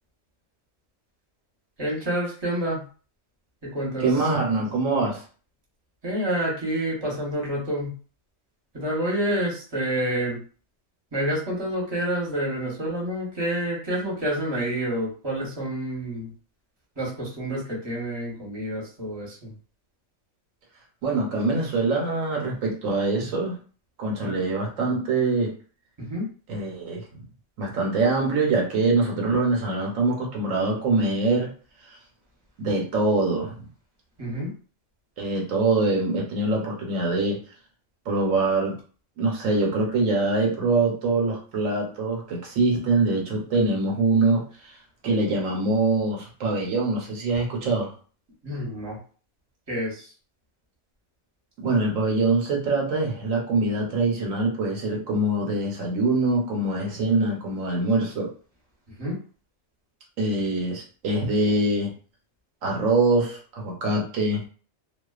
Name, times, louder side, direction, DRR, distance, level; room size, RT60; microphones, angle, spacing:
voice 1, 1.8-2.8 3.6-4.1 6.0-7.9 8.7-10.4 11.1-16.3 17.0-19.5 26.1-26.2 34.2-34.5 48.4-49.0 49.7-50.1 59.0-59.2, right 1 dB, 20° right, -4 dB, 0.9 m, -28 dB
voice 2, 4.0-5.2 21.0-23.5 24.0-25.5 26.5-27.0 27.6-31.5 31.9-32.0 32.6-33.5 35.2-37.4 38.1-38.7 39.2-44.8 45.0-47.9 51.6-58.3 60.2-61.9 62.6-64.4, right 3 dB, 80° right, -1 dB, 1.1 m, -24 dB
2.3 x 2.3 x 2.3 m, 0.40 s
omnidirectional pair, 1.3 m